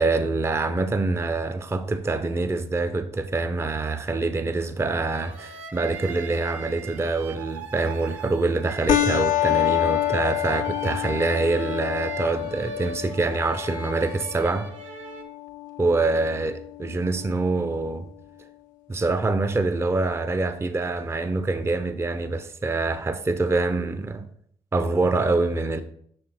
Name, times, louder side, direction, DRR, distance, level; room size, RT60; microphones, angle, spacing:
voice 1, 0.0-14.7 15.8-18.1 18.9-24.3 24.7-25.8, right 3 dB, 15° right, 0.5 m, -25 dB
sound 1, 5.1-15.2, right 6 dB, 85° right, 0.6 m, -40 dB
sound 2, 8.9-17.9, left 13 dB, 60° left, 0.5 m, -28 dB
5.6 x 4.4 x 3.8 m
hypercardioid pair, 40°, 16 cm